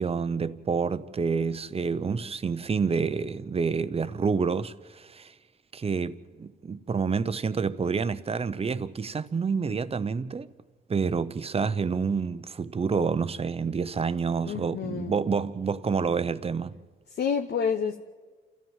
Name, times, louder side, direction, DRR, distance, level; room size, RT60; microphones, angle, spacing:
voice 1, 0.0-5.3 5.7-10.5 10.9-16.7, right 5 dB, 30° right, 0.8 m, -28 dB
voice 2, 14.5-15.2 17.1-18.1, left 6 dB, 55° left, 1.0 m, -29 dB
29.5 x 13.5 x 7.4 m
cardioid pair, 90°, 20 cm